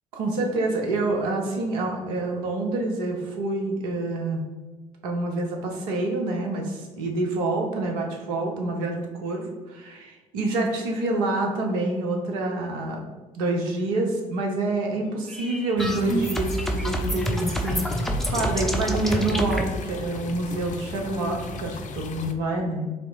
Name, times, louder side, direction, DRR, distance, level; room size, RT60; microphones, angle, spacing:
voice 1, 0.1-4.4 5.0-13.1 13.3-22.9, right 2 dB, 75° right, 1 dB, 0.8 m, -27 dB
sound 1, 15.3-19.6, equal, ahead, 0.7 m, -27 dB
sound 2, 15.8-22.3, left 4 dB, 45° left, 0.5 m, -37 dB
3.4 x 2.8 x 4.0 m, 1.2 s
hypercardioid pair, 50°, 18 cm